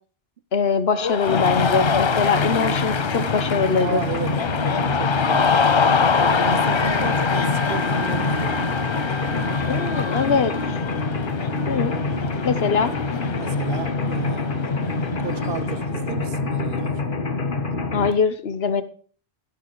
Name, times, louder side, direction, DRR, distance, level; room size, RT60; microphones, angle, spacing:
voice 1, 0.5-4.0 9.7-10.8 11.7-11.9 12.4-12.9 17.9-18.8, left 5 dB, 75° left, 1.3 m, -22 dB
Cheering, 1.0-15.8, left 6 dB, 40° left, 0.4 m, -25 dB
Mechanisms, 1.3-18.1, left 3 dB, 55° left, 1.6 m, -26 dB
voice 2, 2.3-2.7 3.6-4.4 4.8-5.5 6.2-8.7 13.4-14.5 15.2-17.1, right 7 dB, 65° right, 0.9 m, -33 dB
Wind instrument woodwind instrument, 5.3-11.1, right 1 dB, 15° right, 1.5 m, -36 dB
15.0 x 8.3 x 4.8 m
omnidirectional pair, 1.1 m